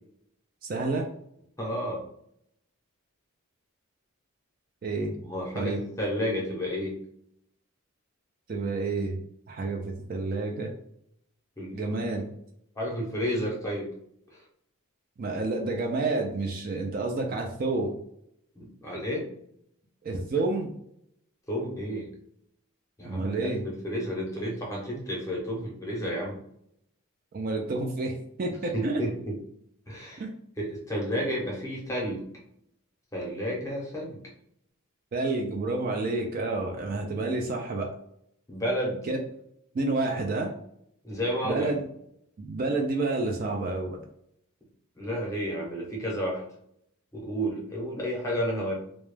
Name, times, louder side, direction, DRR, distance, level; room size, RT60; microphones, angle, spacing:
voice 1, 0.6-1.1 4.8-5.1 5.5-5.8 8.5-9.2 9.5-9.8 10.1-10.7 11.7-12.3 15.2-17.9 20.0-20.7 23.0-23.6 27.3-29.0 30.2-30.3 35.1-37.9 39.1-39.2 39.7-40.5 41.4-41.8 42.4-44.0, right 3 dB, 40° right, 2 dB, 0.3 m, -29 dB
voice 2, 1.6-2.0 5.2-7.0 11.6-11.8 12.8-13.9 18.6-19.3 21.5-22.1 23.0-26.4 28.7-29.4 29.9-30.2 30.6-32.3 33.1-34.2 36.9-37.1 38.5-39.1 41.0-41.8 45.0-46.4 47.1-48.7, equal, 15° left, -3 dB, 0.6 m, -31 dB
2.2 x 2.0 x 3.1 m, 0.71 s
head